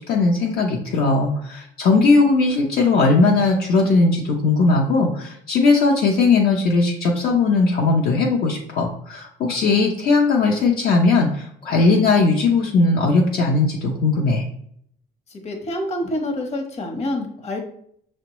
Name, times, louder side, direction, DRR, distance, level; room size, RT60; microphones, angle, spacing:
voice 1, 0.0-14.5, left 3 dB, 65° left, -1 dB, 0.6 m, -18 dB
voice 2, 15.3-17.6, left 1 dB, 40° left, 3 dB, 0.9 m, -27 dB
6.0 x 2.1 x 2.9 m, 0.66 s
cardioid pair, 110°, 17 cm